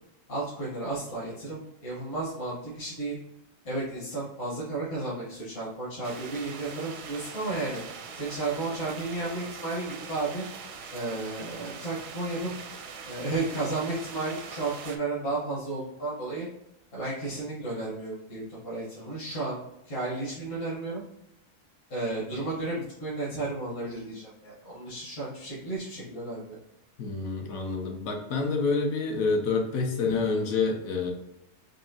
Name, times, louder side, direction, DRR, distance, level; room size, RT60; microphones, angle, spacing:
voice 1, 0.3-3.2 3.6-10.4 10.9-12.5 13.0-16.5 16.9-21.0 21.9-26.6 30.0-30.1, right 2 dB, 65° left, -7 dB, 1.6 m, -33 dB
sound 1, 6.0-15.0, right 6 dB, 80° right, 1.0 m, -42 dB
voice 2, 27.0-31.1, left 4 dB, 85° left, 3 dB, 1.2 m, -27 dB
4.8 x 2.7 x 2.7 m, 0.85 s
omnidirectional pair, 1.4 m